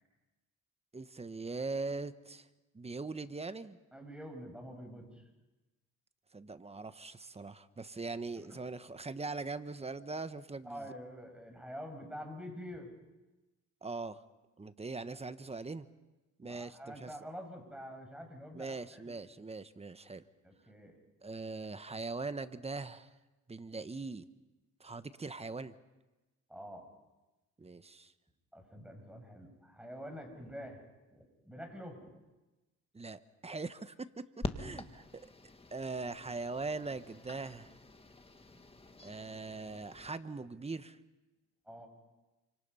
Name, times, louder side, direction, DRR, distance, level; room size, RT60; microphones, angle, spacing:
voice 1, 0.9-2.5 2.7-3.8 6.3-10.8 13.8-14.2 14.6-15.9 16.4-17.1 18.5-20.2 21.2-23.1 23.5-24.2 24.8-25.7 27.6-28.1 32.9-34.3 34.6-35.2 35.7-37.7 39.0-41.0, right 3 dB, 20° right, 12 dB, 1.2 m, -41 dB
voice 2, 3.9-5.3 8.5-8.6 10.6-12.9 16.4-19.2 20.4-21.0 26.5-26.9 28.5-30.8 31.1-32.1 34.4-35.0 38.5-39.1 41.7-41.9, equal, 5° right, 3 dB, 6.9 m, -47 dB
sound 1, 34.4-40.1, left 3 dB, 20° left, 1.9 m, -46 dB
28.5 x 26.0 x 5.6 m, 1.1 s
cardioid pair, 90°, 30 cm